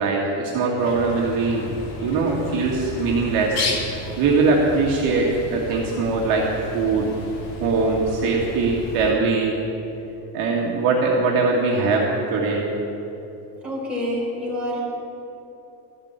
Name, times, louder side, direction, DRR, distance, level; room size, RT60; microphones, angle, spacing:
voice 1, 0.0-1.6 2.0-3.6 3.9-6.4 6.7-7.1 7.6-9.6 10.3-12.6, right 3 dB, 50° right, -3 dB, 1.9 m, -21 dB
Bird, 0.8-9.1, left 2 dB, 75° left, 2.4 m, -33 dB
voice 2, 13.6-14.8, left 1 dB, 5° right, -8 dB, 3.8 m, -27 dB
14.0 x 7.4 x 8.9 m, 2.9 s
cardioid pair, 175°, 45 cm